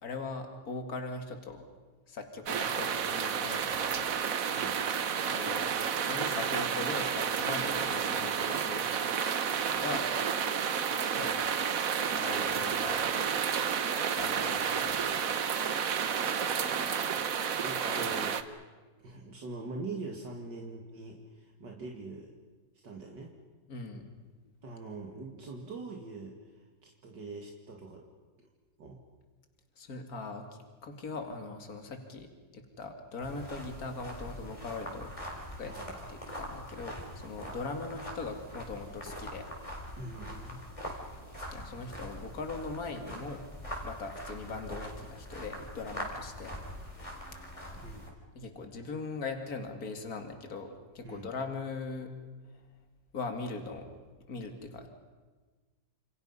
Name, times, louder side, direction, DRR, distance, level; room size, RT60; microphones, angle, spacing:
voice 1, 0.0-1.7 2.1-4.1 5.2-5.7 6.0-8.9 9.3-9.4 9.7-10.1 11.0-11.4 12.0-13.4 14.2-15.0 17.8-18.0 23.7-24.0 29.8-30.5 30.8-35.1 35.6-39.5 41.5-43.4 43.8-46.6 48.3-52.1 53.1-53.9 54.3-54.9, left 3 dB, 50° left, 4 dB, 2.8 m, -40 dB
sound 1, 2.5-18.4, right 7 dB, 55° right, 1.3 m, -31 dB
voice 2, 4.5-4.8 16.8-17.0 17.6-18.4 19.0-22.3 22.8-23.3 24.6-28.0 28.8-29.0 35.6-36.0 39.9-40.6 47.8-48.0 51.0-51.3, right 3 dB, 70° right, 0 dB, 2.7 m, -43 dB
sound 2, 33.2-48.1, equal, 15° left, 4.2 m, -43 dB
28.5 x 28.0 x 5.6 m, 1.3 s
omnidirectional pair, 2.0 m